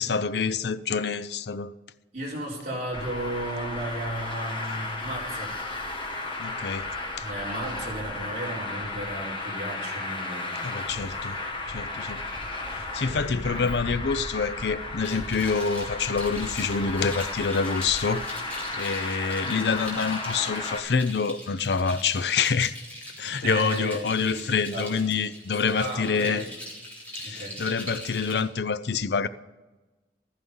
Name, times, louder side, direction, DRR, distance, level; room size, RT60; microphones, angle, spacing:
voice 1, 0.0-1.7 6.4-6.9 7.2-7.3 10.6-11.4 11.7-12.2 12.7-18.3 18.7-22.7 23.2-26.4 27.2-29.3, left 5 dB, 70° left, 0.6 m, -27 dB
voice 2, 2.1-5.5 7.2-11.4 13.0-13.7 23.4-24.9 25.5-26.5 27.2-27.6, right 1 dB, 45° right, 4.5 m, -35 dB
Traffic noise roadway noise, 2.9-20.8, left 2 dB, 30° left, 1.8 m, -34 dB
sound 1, 15.0-28.4, left 1 dB, 10° left, 3.7 m, -42 dB
14.5 x 14.0 x 5.5 m
head